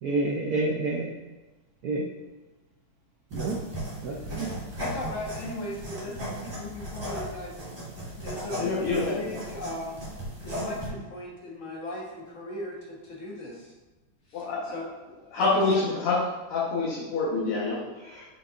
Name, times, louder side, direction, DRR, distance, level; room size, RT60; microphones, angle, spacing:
voice 1, 0.0-1.1 1.8-2.1 3.3-3.6 4.0-4.5, right 2 dB, 85° right, -1 dB, 0.8 m, -28 dB
sound 1, 3.3-10.9, equal, 25° right, 2.2 m, -36 dB
voice 2, 4.8-7.5 8.1-10.0 10.4-13.7 14.3-14.9 15.4-15.8, left 1 dB, 40° left, -4 dB, 1.5 m, -38 dB
voice 3, 8.6-9.3 14.3-14.8 15.3-16.2 16.5-18.3, left 3 dB, 85° left, -7 dB, 2.2 m, -27 dB
6.6 x 5.7 x 2.5 m, 1.1 s
omnidirectional pair, 2.3 m